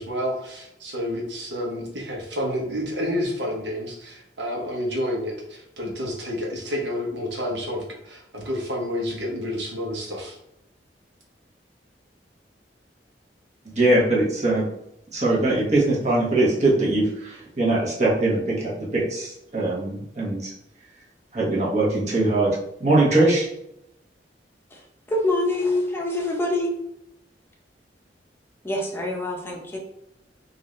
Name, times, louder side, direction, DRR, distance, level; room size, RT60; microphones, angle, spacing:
voice 1, 0.0-10.4, equal, 80° right, -1 dB, 1.0 m, -29 dB
voice 2, 13.7-14.7 15.1-20.5 21.3-22.5 22.8-23.5, right 2 dB, 40° right, -5 dB, 1.2 m, -21 dB
voice 3, 25.1-26.7 28.6-29.8, left 1 dB, 15° left, -1 dB, 0.7 m, -25 dB
3.9 x 2.6 x 3.2 m, 0.81 s
head